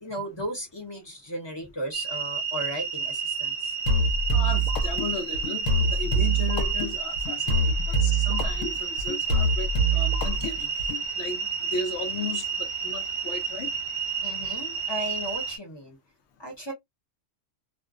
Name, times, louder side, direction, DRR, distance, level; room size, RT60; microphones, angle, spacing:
voice 1, 0.0-3.7 7.8-7.9 14.2-16.0 16.4-16.7, equal, 25° left, 0.8 m, -36 dB
sound 1, 1.9-15.6, right 6 dB, 55° right, 0.8 m, -31 dB
sound 2, 3.9-11.0, right 2 dB, 90° left, 1.0 m, -25 dB
voice 2, 4.3-10.7 11.2-13.7, left 5 dB, 70° left, 0.8 m, -36 dB
2.4 x 2.1 x 2.4 m
omnidirectional pair, 1.3 m